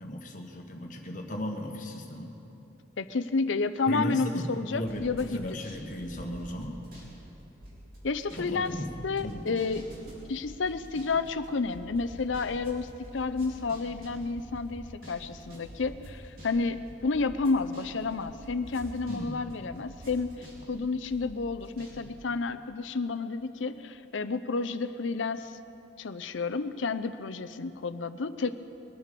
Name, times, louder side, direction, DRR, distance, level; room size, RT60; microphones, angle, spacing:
voice 1, 0.0-2.3 3.9-6.8 8.3-9.7 19.1-19.5, left 1 dB, 45° left, 2 dB, 1.5 m, -36 dB
voice 2, 3.0-5.6 8.0-8.8 9.0-9.8 10.3-25.6 26.0-28.6, left 4 dB, 80° left, 11 dB, 0.6 m, -31 dB
sound 1, 4.9-7.1 7.4-19.2 19.5-21.9 22.2-22.3, equal, 50° right, 4.2 m, -47 dB
22.5 x 9.1 x 6.8 m, 2.9 s
head